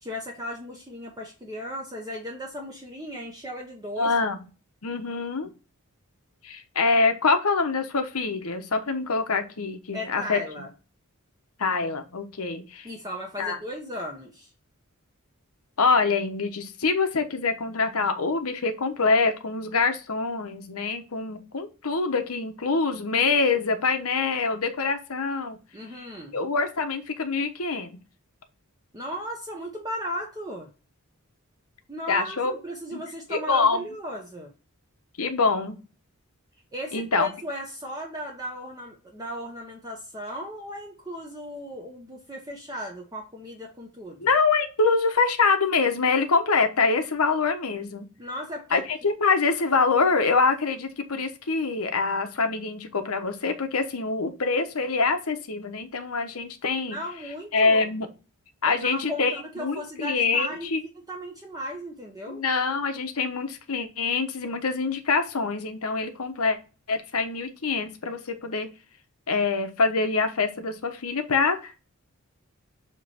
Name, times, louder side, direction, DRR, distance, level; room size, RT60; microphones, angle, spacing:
voice 1, 0.0-4.1 9.9-10.7 12.8-14.5 25.7-26.4 28.9-30.7 31.9-34.5 36.7-44.2 48.2-48.8 56.9-57.9 58.6-62.4, equal, 15° right, 0 dB, 0.9 m, -36 dB
voice 2, 4.0-4.4 4.8-5.5 6.4-10.4 11.6-12.9 13.4-13.6 15.8-25.6 26.3-28.0 32.1-32.5 32.9-33.0 33.3-33.9 35.2-35.8 36.9-37.3 44.2-48.1 48.7-57.0 57.5-58.1 58.6-60.8 62.3-66.6 66.9-68.7 69.3-71.8, left 4 dB, 80° left, 6 dB, 1.1 m, -25 dB
7.4 x 3.2 x 4.3 m, 0.33 s
head